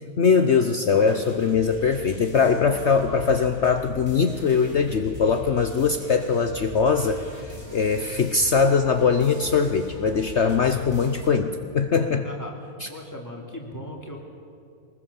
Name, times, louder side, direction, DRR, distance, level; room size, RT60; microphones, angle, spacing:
voice 1, 0.2-12.3 12.8-12.9, left 5 dB, 55° left, 7 dB, 1.0 m, -21 dB
sound 1, 0.9-11.3, left 1 dB, 25° right, 5.8 m, -41 dB
voice 2, 12.2-14.2, left 1 dB, 10° left, -1 dB, 3.3 m, -38 dB
23.5 x 20.5 x 7.2 m, 2.5 s
omnidirectional pair, 1.6 m